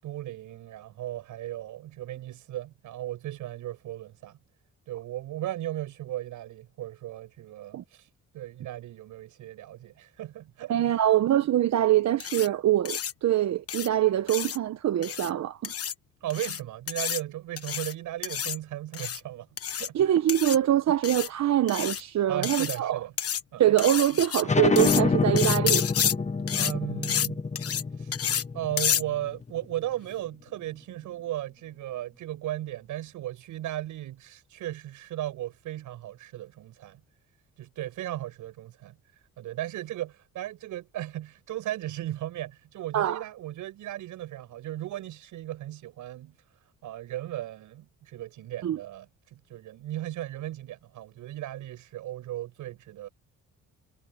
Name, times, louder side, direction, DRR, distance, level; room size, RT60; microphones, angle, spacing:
voice 1, 0.0-4.4 4.9-8.1 8.3-11.0 16.2-19.5 19.8-20.0 22.3-23.1 23.5-23.8 26.5-27.4 28.0-28.1 28.5-37.0 37.6-39.0 39.4-46.4 46.8-53.1, right 13 dB, 85° right, 6.3 m, -36 dB
voice 2, 10.7-15.7 19.9-23.0 23.6-25.8 42.9-43.2 48.6-48.8, right 12 dB, 65° right, 1.1 m, -24 dB
sound 1, 12.2-12.5 12.8-13.1 13.7-13.9 14.3-14.6 15.0-15.3 15.6-15.9 16.3-16.6 16.9-17.2 17.6-17.9 18.2-18.6 18.9-19.2 19.6-19.9 20.3-20.6 21.0-21.3 21.7-22.0 22.4-22.8 23.2-23.4 23.8-24.4 24.8-25.0 25.4-26.1 26.5-26.7 27.0-27.3 27.5-27.8 28.1-28.4 28.8-29.0, left 9 dB, 50° left, 1.4 m, -29 dB
sound 2, 24.4-29.7, left 4 dB, 25° left, 1.4 m, -27 dB
cardioid pair, 90°, 30 cm